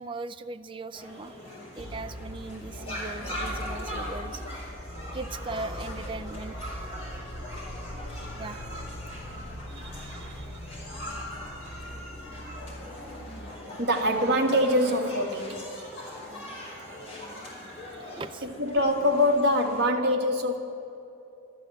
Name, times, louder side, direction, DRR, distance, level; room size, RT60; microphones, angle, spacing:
voice 1, 0.0-1.4 1.8-4.4 5.1-6.7 8.4-8.6 9.7-10.6 17.9-18.4, right 3 dB, 25° right, 0.4 m, -39 dB
sound 1, 0.9-19.8, left 1 dB, 30° left, 4.3 m, -41 dB
sound 2, 1.8-13.5, equal, 70° left, 2.8 m, -41 dB
voice 2, 13.8-15.7 18.4-20.6, left 1 dB, 50° right, 1.7 m, -24 dB
14.0 x 12.5 x 7.9 m
head